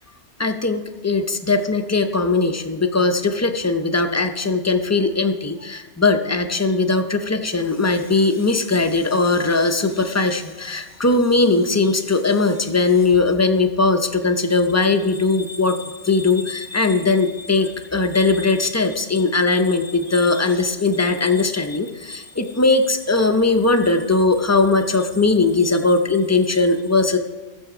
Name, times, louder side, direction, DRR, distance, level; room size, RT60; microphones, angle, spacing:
voice 1, 0.4-1.2 1.5-27.2, left 3 dB, 20° left, 7 dB, 0.4 m, -19 dB
14.0 x 7.1 x 4.9 m, 1.2 s
omnidirectional pair, 1.2 m